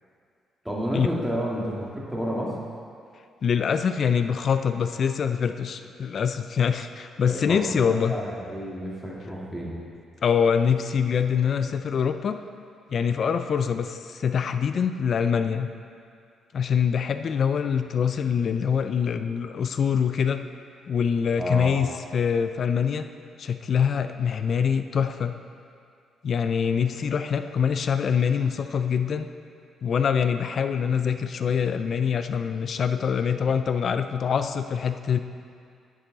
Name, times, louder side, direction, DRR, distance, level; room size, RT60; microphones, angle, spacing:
voice 1, 0.6-2.5 7.2-9.8 21.4-21.8, equal, 5° right, -5 dB, 2.2 m, -30 dB
voice 2, 3.4-8.2 10.2-12.4 12.9-15.7 16.5-20.4 20.9-21.9 22.1-23.1 23.4-25.3 26.2-29.3 29.8-35.2, left 7 dB, 55° left, 9 dB, 0.4 m, -24 dB
10.0 x 7.5 x 4.0 m, 2.3 s
cardioid pair, 90°, 0 cm